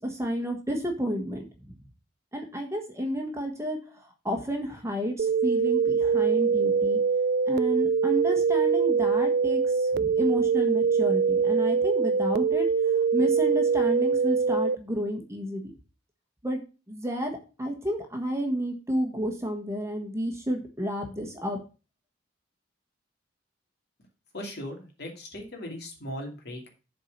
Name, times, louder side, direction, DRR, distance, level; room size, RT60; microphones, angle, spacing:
voice 1, 0.0-1.7 2.3-7.0 7.5-12.7 13.1-15.6 16.4-16.6 16.9-21.6, equal, 15° right, 3 dB, 1.3 m, -31 dB
sound 1, 5.2-14.8, right 5 dB, 55° right, 0.3 m, -23 dB
voice 2, 24.3-26.7, left 1 dB, 55° left, 2 dB, 2.6 m, -38 dB
7.4 x 4.6 x 6.6 m, 0.33 s
head